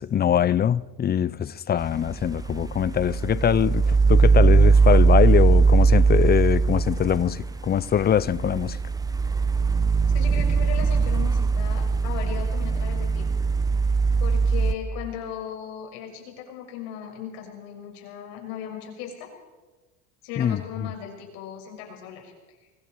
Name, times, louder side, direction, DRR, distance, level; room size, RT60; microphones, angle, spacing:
voice 1, 0.0-8.8 20.4-20.6, left 9 dB, 25° left, 0.7 m, -23 dB
sound 1, 1.8-14.7, right 4 dB, 10° right, 1.2 m, -20 dB
voice 2, 10.1-13.3 14.2-19.3 20.2-22.3, left 9 dB, 70° left, 6.9 m, -37 dB
24.5 x 22.5 x 4.8 m
supercardioid pair, 100°, 37 cm